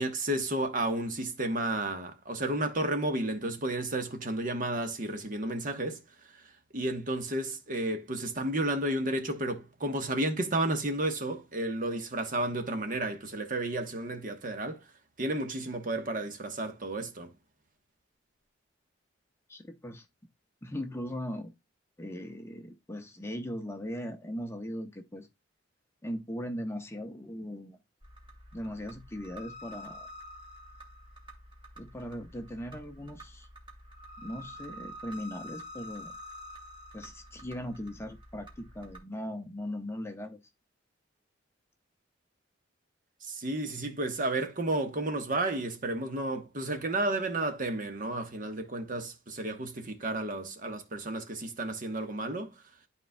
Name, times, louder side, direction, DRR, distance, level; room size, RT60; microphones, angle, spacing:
voice 1, 0.0-6.0 6.3-14.9 15.2-17.3 43.2-52.5, right 2 dB, 45° right, 1.1 m, -32 dB
voice 2, 19.5-20.1 20.6-21.5 22.0-25.3 26.0-27.8 28.5-30.1 31.8-33.5 34.2-36.1 36.9-40.4, equal, 15° left, 0.7 m, -39 dB
sound 1, 28.0-39.0, equal, 25° right, 2.0 m, -48 dB
12.0 x 4.3 x 2.2 m
head